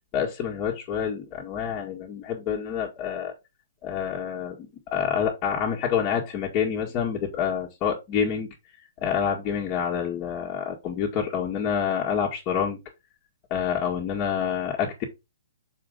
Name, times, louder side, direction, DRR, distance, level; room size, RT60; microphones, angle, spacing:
voice 1, 0.1-3.3 3.8-8.5 9.0-12.8 13.5-15.0, left 8 dB, 30° left, 1.8 m, -27 dB
6.7 x 4.9 x 3.7 m
figure-of-eight pair, 120°, 0 cm